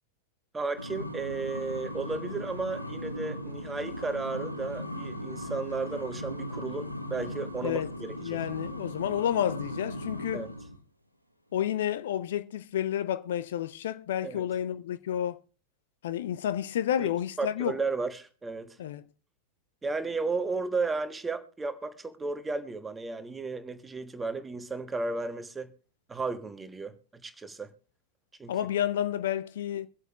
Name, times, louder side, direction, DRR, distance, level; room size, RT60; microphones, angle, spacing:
voice 1, 0.5-8.4 10.3-10.5 14.2-14.4 17.0-17.1 17.4-18.8 19.8-25.7 26.1-27.0 27.2-27.7 28.4-28.5, right 3 dB, 15° right, 1.2 m, -34 dB
sound 1, 0.8-10.8, equal, 90° right, 0.9 m, -38 dB
voice 2, 8.2-10.5 11.5-15.4 16.0-17.8 18.8-19.0 28.5-29.9, left 10 dB, 60° left, 0.5 m, -30 dB
24.0 x 8.1 x 2.4 m
figure-of-eight pair, 90°, 0 cm